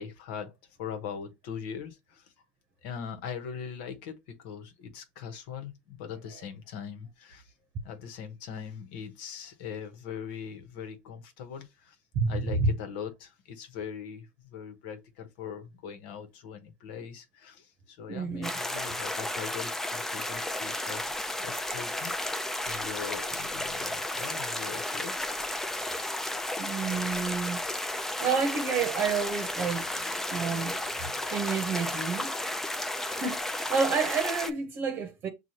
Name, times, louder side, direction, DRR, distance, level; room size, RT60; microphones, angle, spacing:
voice 1, 0.0-2.3 2.8-7.5 7.8-12.0 12.3-22.1 22.7-25.3, left 7 dB, 70° left, 1.1 m, -41 dB
voice 2, 12.1-12.7 18.1-18.5 26.6-27.6 27.9-32.4 33.1-35.3, right 5 dB, 40° right, 0.9 m, -30 dB
sound 1, 18.4-34.5, left 1 dB, 5° left, 0.5 m, -33 dB
6.2 x 2.4 x 2.8 m
supercardioid pair, 115°, 5 cm